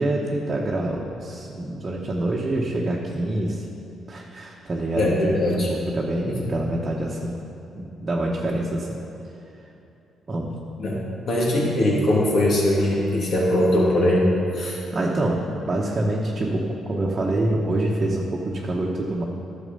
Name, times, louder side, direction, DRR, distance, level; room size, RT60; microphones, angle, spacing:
voice 1, 0.0-3.7 4.1-5.4 5.7-7.4 7.7-8.9 10.3-10.6 14.6-19.2, right 1 dB, 35° right, -3 dB, 1.1 m, -26 dB
voice 2, 5.0-5.7 6.4-6.6 10.8-14.8, left 1 dB, 60° left, -4 dB, 2.5 m, -21 dB
11.0 x 6.6 x 5.4 m, 2.9 s
cardioid pair, 90°, 0 cm